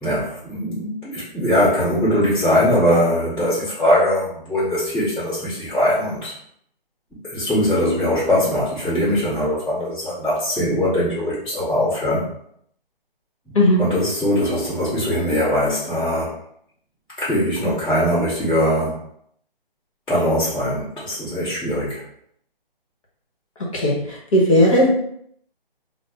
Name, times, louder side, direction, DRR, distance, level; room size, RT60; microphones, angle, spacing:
voice 1, 0.0-6.3 7.2-12.2 13.4-16.4 17.2-19.0 20.1-22.0, left 1 dB, 5° left, -17 dB, 1.0 m, -21 dB
voice 2, 23.7-24.9, left 1 dB, 35° left, -3 dB, 1.0 m, -16 dB
4.9 x 2.1 x 2.4 m, 0.70 s
figure-of-eight pair, 155°, 29 cm